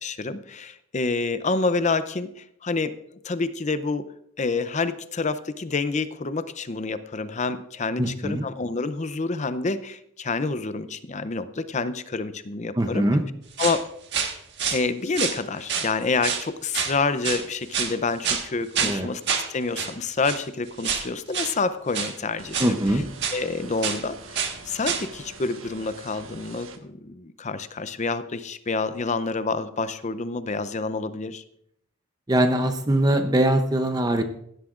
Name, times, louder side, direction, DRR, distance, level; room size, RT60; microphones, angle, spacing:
voice 1, 0.0-2.9 3.2-4.1 4.4-13.1 13.6-13.8 14.7-19.2 19.5-22.7 23.3-31.4, left 3 dB, 35° left, 12 dB, 0.6 m, -28 dB
voice 2, 8.0-8.4 12.8-13.2 18.8-19.1 22.6-23.0 32.3-34.2, right 1 dB, 20° right, 7 dB, 0.7 m, -22 dB
sound 1, 13.6-13.8 14.1-14.8 15.1-15.9 16.2-16.5 16.7-17.0 17.2-17.9 18.2-18.5 18.7-19.0 19.3-19.5 19.8-19.9 20.2-20.4 20.8-21.1 21.3-21.5 21.9-22.1 22.5-23.4 23.8-24.0 24.3-24.6 24.8-25.1, right 7 dB, 55° right, 1.5 m, -27 dB
sound 2, 22.4-26.8, right 4 dB, 75° right, 1.2 m, -44 dB
16.5 x 11.5 x 2.5 m, 0.72 s
head